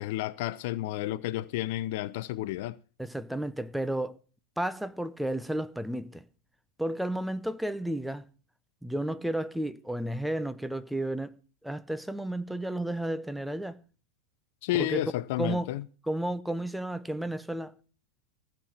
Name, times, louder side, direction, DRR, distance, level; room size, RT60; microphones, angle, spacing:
voice 1, 0.0-2.8 14.6-15.8, left 15 dB, 50° left, 0.5 m, -31 dB
voice 2, 3.0-4.2 4.6-6.2 6.8-8.3 8.8-11.4 11.6-13.8 14.7-15.0 15.4-15.7 16.0-17.7, right 1 dB, ahead, 0.7 m, -32 dB
15.5 x 5.9 x 8.7 m
figure-of-eight pair, 90°, 0 cm